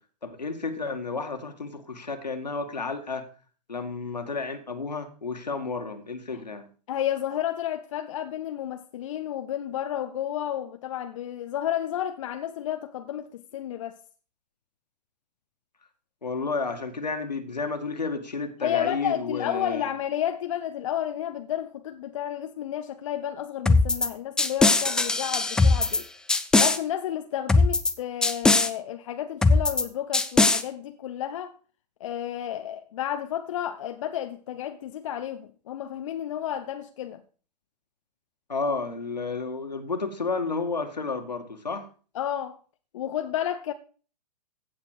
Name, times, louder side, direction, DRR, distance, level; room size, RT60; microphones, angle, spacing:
voice 1, 0.2-3.3 3.7-6.7 16.2-19.9 38.5-41.9, left 4 dB, 80° left, 2.0 m, -31 dB
voice 2, 6.9-14.0 18.6-26.1 26.6-31.5 32.0-37.2 42.1-42.6 42.9-43.7, left 11 dB, 50° left, 0.8 m, -31 dB
sound 1, 23.7-24.1 24.4-26.0 26.3-26.8 27.5-27.9 28.2-28.7 29.4-29.8 30.1-30.6, left 3 dB, 5° left, 0.5 m, -20 dB
16.0 x 6.9 x 4.8 m
figure-of-eight pair, 110°, 21 cm